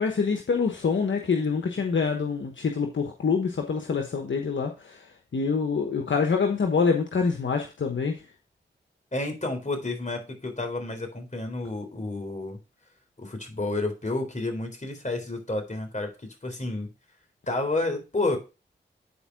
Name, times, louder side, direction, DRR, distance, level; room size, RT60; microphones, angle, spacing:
voice 1, 0.0-5.0 5.3-8.2, left 5 dB, 70° left, 4 dB, 1.2 m, -26 dB
voice 2, 9.1-12.6 13.2-16.9 17.5-18.4, left 2 dB, 40° left, 4 dB, 3.8 m, -30 dB
10.0 x 4.6 x 4.7 m, 0.30 s
cardioid pair, 40°, 20 cm